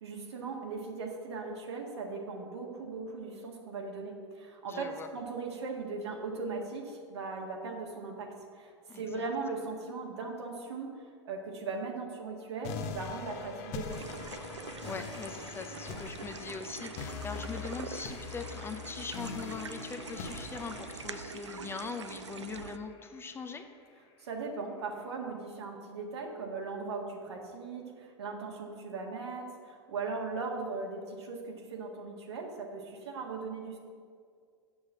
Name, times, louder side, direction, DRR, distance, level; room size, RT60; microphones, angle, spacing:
voice 1, 0.0-14.1 24.2-33.8, right 4 dB, 70° right, 1 dB, 1.6 m, -39 dB
voice 2, 4.7-5.1 8.9-9.2 14.8-23.7, left 4 dB, 15° left, 7 dB, 0.6 m, -41 dB
sound 1, 12.6-23.6, left 5 dB, 45° left, 1.0 m, -43 dB
sound 2, 13.9-22.8, right 6 dB, 85° right, 0.4 m, -45 dB
7.1 x 6.3 x 7.5 m, 2.2 s
figure-of-eight pair, 90°, 14 cm